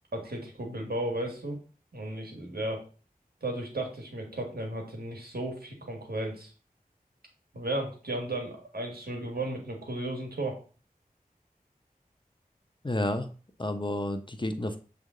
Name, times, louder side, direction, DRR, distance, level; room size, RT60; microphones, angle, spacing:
voice 1, 0.1-1.6 1.9-2.9 3.4-6.5 7.5-10.6, right 1 dB, 80° right, 1 dB, 1.7 m, -34 dB
voice 2, 12.8-13.3 13.6-14.8, left 1 dB, 30° left, 8 dB, 0.7 m, -30 dB
7.4 x 3.4 x 3.8 m, 0.38 s
wide cardioid pair, 45°, 16 cm